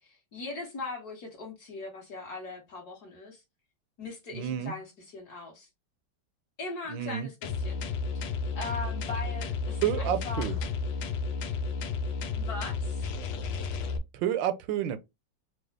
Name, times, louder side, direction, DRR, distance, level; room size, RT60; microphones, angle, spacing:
voice 1, 0.0-3.4 4.0-5.7 6.6-7.8 8.6-10.5 12.3-13.1, left 3 dB, 50° left, 1.9 m, -40 dB
voice 2, 4.3-4.7 6.9-7.3 9.8-10.6 14.1-15.0, right 10 dB, 75° right, 1.3 m, -29 dB
sound 1, 7.4-14.0, left 4 dB, 85° left, 1.5 m, -32 dB
4.7 x 2.3 x 3.2 m
omnidirectional pair, 2.2 m